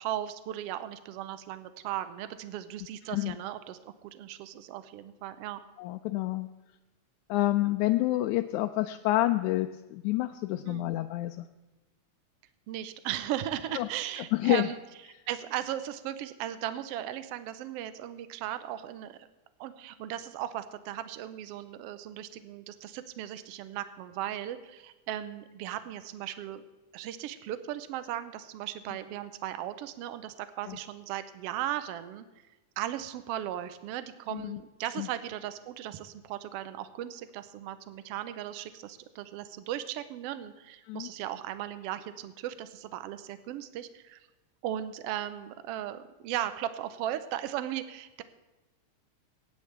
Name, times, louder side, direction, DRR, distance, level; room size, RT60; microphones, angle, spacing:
voice 1, 0.0-5.6 10.6-10.9 12.7-14.8 15.3-19.2 19.6-26.6 26.9-32.3 32.8-44.2 44.6-48.2, right 12 dB, 75° right, 11 dB, 1.5 m, -37 dB
voice 2, 5.8-6.5 7.3-11.5 13.8-13.9 14.2-14.7 30.7-30.8 34.3-34.6 35.0-35.1 40.9-41.1, left 16 dB, 80° left, 6 dB, 1.9 m, -28 dB
25.0 x 9.6 x 3.4 m, 1.1 s
omnidirectional pair, 3.5 m